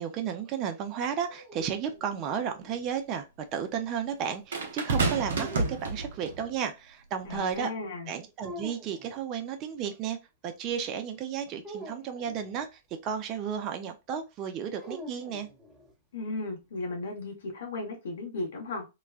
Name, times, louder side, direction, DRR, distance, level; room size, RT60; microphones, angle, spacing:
voice 1, 0.0-3.3 3.5-7.7 8.1-10.2 10.4-15.5, right 8 dB, 35° right, 0.5 m, -33 dB
sound 1, 1.0-2.9 5.4-6.6 8.4-9.2 11.6-12.7 14.7-15.9, equal, 10° right, 0.9 m, -46 dB
sound 2, 1.6-1.7 4.5-6.4 7.3-7.5, right 3 dB, 75° right, 0.8 m, -29 dB
voice 2, 7.2-8.1 16.1-18.8, left 2 dB, 70° left, 1.2 m, -35 dB
3.0 x 2.2 x 2.4 m
hypercardioid pair, 115°, 0 cm